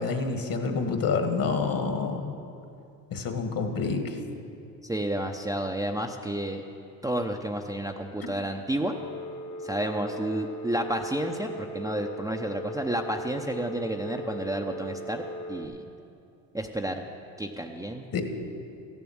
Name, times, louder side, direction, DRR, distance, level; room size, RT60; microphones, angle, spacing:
voice 1, 0.0-2.3 3.1-4.2 18.1-18.2, left 4 dB, 45° left, 6 dB, 1.7 m, -28 dB
voice 2, 4.8-6.6 7.0-8.9 9.6-15.2 15.5-15.9 16.5-17.1 17.4-18.0, right 1 dB, 5° right, 2 dB, 0.7 m, -31 dB
Telephone, 8.9-15.7, equal, 70° left, 1.3 m, -38 dB
14.0 x 7.2 x 8.7 m, 2.6 s
supercardioid pair, 75°, 47 cm